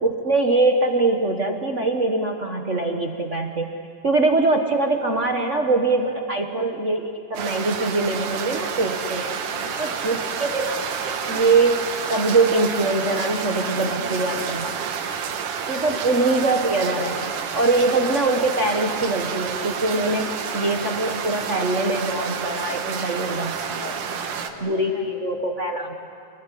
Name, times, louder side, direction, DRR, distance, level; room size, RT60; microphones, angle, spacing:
voice 1, 0.0-3.7 4.0-9.3 9.8-11.8 12.1-14.7 15.7-23.6 24.6-26.1, right 2 dB, 70° right, 3 dB, 0.7 m, -23 dB
voice 2, 5.2-6.2 9.5-10.3 13.6-14.6 15.7-16.2 23.7-25.1, left 3 dB, 75° left, 0 dB, 4.7 m, -43 dB
sound 1, 7.4-24.5, right 6 dB, 90° right, 3.1 m, -29 dB
27.5 x 21.5 x 9.9 m, 2.4 s
omnidirectional pair, 3.6 m